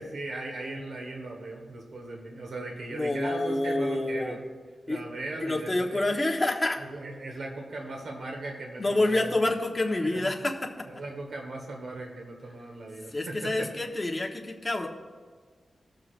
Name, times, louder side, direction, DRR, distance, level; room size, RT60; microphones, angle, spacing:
voice 1, 0.0-4.4 4.9-6.2 6.9-9.4 10.0-10.3 10.9-13.7, right 2 dB, 70° right, 1 dB, 1.5 m, -38 dB
voice 2, 2.9-4.4 4.9-5.0 5.4-6.8 8.8-10.7 13.1-14.9, left 2 dB, 20° left, 0 dB, 1.2 m, -27 dB
19.5 x 6.7 x 2.5 m, 1.5 s
wide cardioid pair, 110°, 0 cm